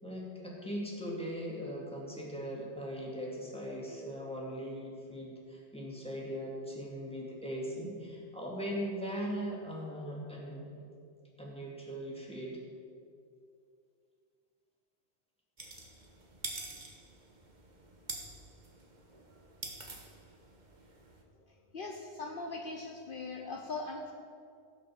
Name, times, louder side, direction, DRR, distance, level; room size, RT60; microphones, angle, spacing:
voice 1, 0.0-10.8 11.4-12.6, equal, 5° left, -3 dB, 2.6 m, -39 dB
sound 1, 15.6-21.2, right 3 dB, 45° right, 1.5 m, -46 dB
voice 2, 21.7-24.1, left 3 dB, 55° left, 2 dB, 1.0 m, -40 dB
16.5 x 6.1 x 7.3 m, 2.3 s
omnidirectional pair, 1.1 m